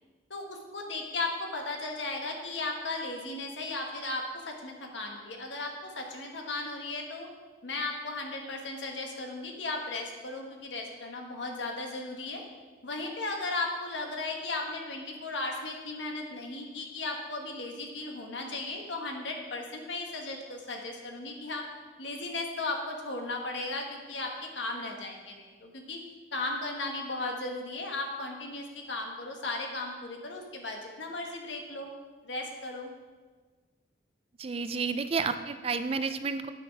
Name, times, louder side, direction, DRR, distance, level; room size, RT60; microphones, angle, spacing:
voice 1, 0.3-7.3 7.6-12.4 12.8-21.6 22.0-26.0 26.3-31.9 32.2-32.9, left 2 dB, 90° left, 2 dB, 1.4 m, -36 dB
voice 2, 34.4-36.5, right 4 dB, 30° right, 10 dB, 0.4 m, -31 dB
9.5 x 6.5 x 4.7 m, 1.4 s
head